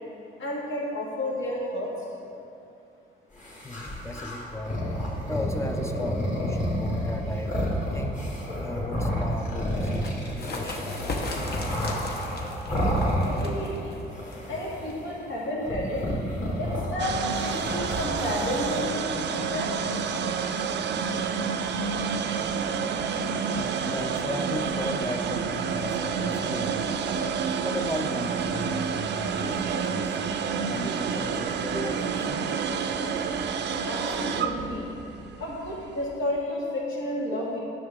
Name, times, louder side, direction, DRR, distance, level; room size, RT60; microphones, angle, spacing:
voice 1, 0.4-1.9 13.3-14.0 14.5-16.1 16.6-19.7 33.9-34.9 35.4-37.6, left 1 dB, 75° left, -5 dB, 2.0 m, -31 dB
sound 1, 3.4-13.8 14.1-15.1 15.6-18.8, equal, 40° left, 1.9 m, -30 dB
voice 2, 3.6-4.8 5.2-7.6 7.9-8.3 8.6-11.0 23.6-27.0 27.6-30.2 30.7-32.5, left 1 dB, 15° left, 4 dB, 0.5 m, -36 dB
sound 2, 9.8-15.2, left 2 dB, 55° left, 1.1 m, -37 dB
sound 3, 17.0-36.1, right 6 dB, 60° right, 0.5 m, -29 dB
9.4 x 6.3 x 3.6 m, 2.7 s
cardioid pair, 90°, 20 cm